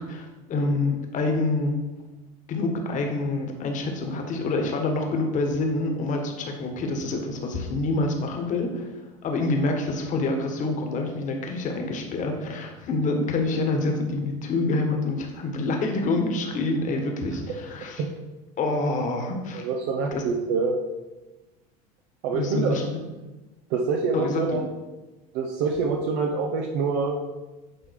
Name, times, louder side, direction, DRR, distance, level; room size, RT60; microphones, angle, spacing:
voice 1, 0.0-1.7 2.5-8.9 9.2-18.0 18.6-19.7 20.1-20.2 22.3-23.1 24.1-24.6, left 2 dB, 40° left, 3 dB, 1.6 m, -27 dB
voice 2, 19.6-20.8 22.2-22.8 23.7-24.6 25.3-27.2, right 4 dB, 70° right, 1 dB, 1.0 m, -25 dB
9.1 x 3.7 x 4.8 m, 1.1 s
supercardioid pair, 105°, 19 cm